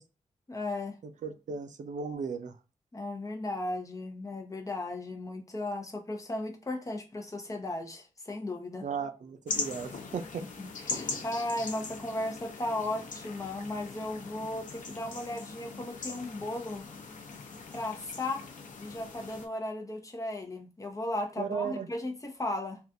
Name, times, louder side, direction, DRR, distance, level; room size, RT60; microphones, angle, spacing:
voice 1, 0.5-1.0 2.9-8.9 10.6-16.9 17.7-18.5 18.8-22.8, left 1 dB, 25° left, 0.8 m, -36 dB
voice 2, 1.2-2.6 8.8-10.4 21.4-21.9, right 6 dB, 70° right, 0.5 m, -36 dB
sound 1, 9.5-19.5, left 4 dB, 75° left, 0.7 m, -40 dB
3.6 x 2.3 x 2.6 m
wide cardioid pair, 130°, 13 cm